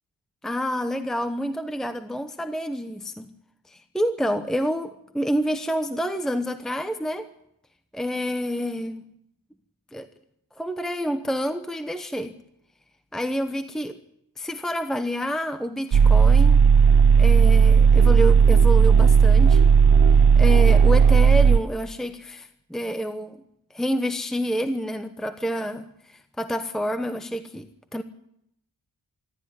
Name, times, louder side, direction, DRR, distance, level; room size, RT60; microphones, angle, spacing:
voice 1, 0.4-3.3 3.7-7.3 7.9-9.0 9.9-10.1 10.6-12.3 13.1-14.0 14.4-16.6 17.2-19.6 20.4-23.4 23.7-28.0, equal, ahead, 8 dB, 0.9 m, -28 dB
sound 1, 15.9-21.6, right 6 dB, 70° right, 1.0 m, -15 dB
25.5 x 12.5 x 9.7 m, 0.78 s
wide cardioid pair, 170°, 41 cm